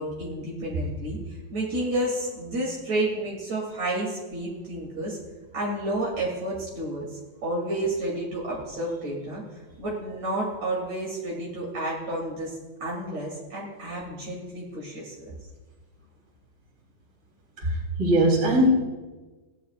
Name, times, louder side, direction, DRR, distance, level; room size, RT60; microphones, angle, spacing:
voice 1, 0.0-5.2 5.5-7.0 7.4-9.4 9.8-15.3, right 1 dB, 55° right, -5 dB, 4.0 m, -30 dB
voice 2, 17.6-18.7, right 1 dB, 35° right, -4 dB, 4.1 m, -21 dB
18.5 x 11.5 x 2.5 m, 1.2 s
omnidirectional pair, 3.4 m